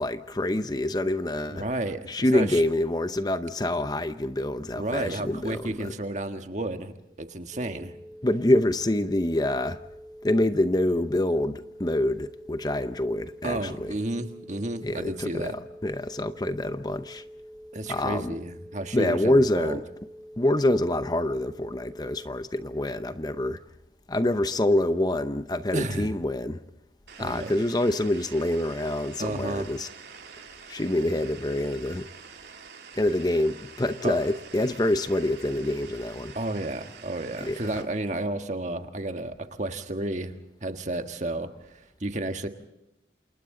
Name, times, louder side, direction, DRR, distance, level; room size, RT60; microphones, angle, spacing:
voice 1, 0.0-1.6 2.1-5.9 8.2-9.8 10.2-13.9 14.8-15.5 15.8-17.2 17.9-18.3 18.9-19.8 20.4-23.6 24.1-26.6 27.2-29.9 30.7-32.1 33.0-36.3 37.4-37.8, left 1 dB, 25° left, 0.7 m, -26 dB
voice 2, 1.5-2.6 4.7-7.9 13.4-15.5 17.7-19.8 25.7-26.1 27.2-27.5 29.2-29.7 34.0-34.2 36.3-40.3 40.6-42.5, right 2 dB, 40° right, 1.5 m, -32 dB
sound 1, 7.5-22.3, equal, ahead, 2.8 m, -46 dB
sound 2, 27.1-37.8, right 6 dB, 75° right, 2.8 m, -47 dB
28.5 x 28.5 x 3.9 m
head